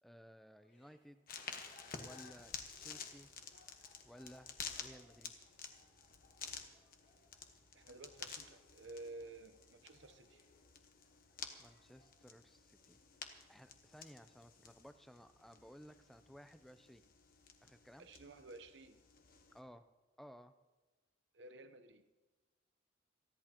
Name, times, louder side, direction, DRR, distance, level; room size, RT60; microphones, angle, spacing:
voice 1, 0.0-1.2 2.0-3.3 4.0-5.3 11.6-13.0 13.5-17.0 17.6-18.1 19.5-19.9 20.2-20.5, equal, ahead, 10 dB, 0.5 m, -58 dB
sound 1, 0.6-12.1, left 3 dB, 75° left, 3.3 m, -68 dB
sound 2, 1.3-19.6, left 6 dB, 50° left, 1.3 m, -52 dB
voice 2, 7.7-10.4 18.0-19.0 21.3-22.1, right 2 dB, 75° right, 9 dB, 0.9 m, -53 dB
28.5 x 11.0 x 3.0 m, 1.2 s
head